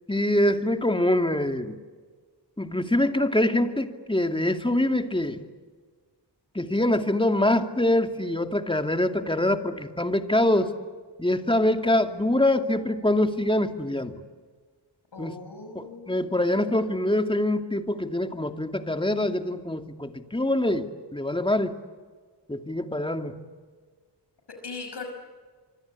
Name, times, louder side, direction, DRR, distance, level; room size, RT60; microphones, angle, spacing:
voice 1, 0.1-1.8 2.6-5.4 6.5-10.7 11.2-14.2 15.2-15.3 15.7-21.7 22.5-23.4, left 1 dB, 10° left, 6 dB, 2.5 m, -24 dB
voice 2, 15.1-16.2 24.5-25.1, left 4 dB, 70° left, 4 dB, 5.9 m, -39 dB
26.5 x 24.5 x 8.5 m, 1.5 s
cardioid pair, 55°, 43 cm